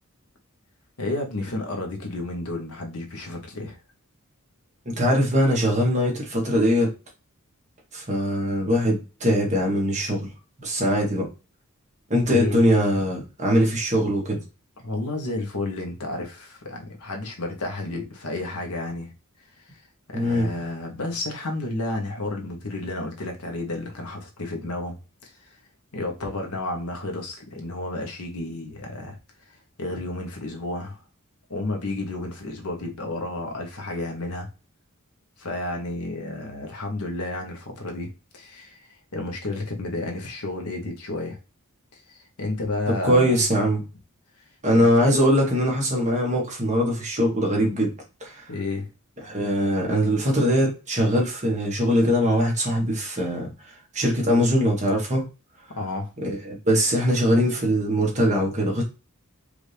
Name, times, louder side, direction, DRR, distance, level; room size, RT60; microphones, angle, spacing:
voice 1, 1.0-3.8 12.3-12.6 14.8-19.1 20.1-25.3 25.9-29.2 29.8-31.0 31.5-34.5 35.4-41.4 41.9-43.4 44.7-45.0 48.5-48.9 55.7-56.1, left 2 dB, 85° left, 1.2 m, -31 dB
voice 2, 4.8-6.9 7.9-10.3 10.6-11.3 12.1-14.4 20.1-20.5 43.0-43.8 44.6-47.9 48.2-48.5 49.2-53.5 53.9-55.2 56.2-58.8, equal, 35° right, 1.6 m, -22 dB
5.0 x 2.6 x 3.3 m
head